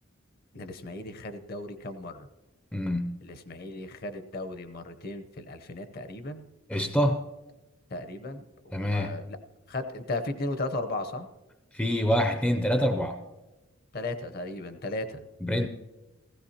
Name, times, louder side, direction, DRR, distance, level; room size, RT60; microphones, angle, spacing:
voice 1, 0.5-2.3 3.2-6.4 7.9-9.4 9.7-11.3 13.9-15.2, left 2 dB, 45° left, 10 dB, 0.8 m, -36 dB
voice 2, 2.7-3.2 6.7-7.2 8.7-9.2 11.7-13.2 15.4-15.7, equal, 5° left, 7 dB, 0.4 m, -26 dB
16.5 x 15.0 x 2.8 m, 1.1 s
head